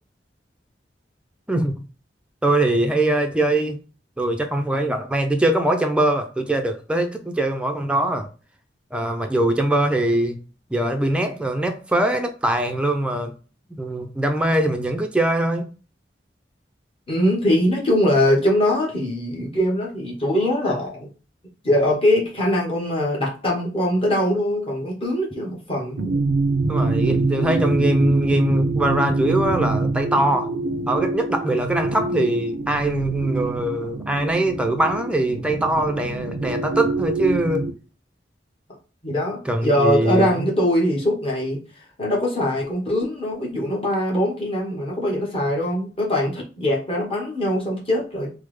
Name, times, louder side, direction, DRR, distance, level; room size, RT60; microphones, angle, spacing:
voice 1, 2.4-3.8 4.2-8.3 8.9-10.4 10.7-13.3 13.7-15.7 26.7-30.5 30.9-37.7 39.5-40.5, right 1 dB, 5° right, 0.3 m, -22 dB
voice 2, 17.1-21.1 21.6-26.1 39.0-41.6 42.0-48.3, left 1 dB, 30° left, 1.0 m, -22 dB
sound 1, 26.0-37.7, right 3 dB, 80° right, 0.4 m, -25 dB
3.4 x 2.0 x 3.1 m
head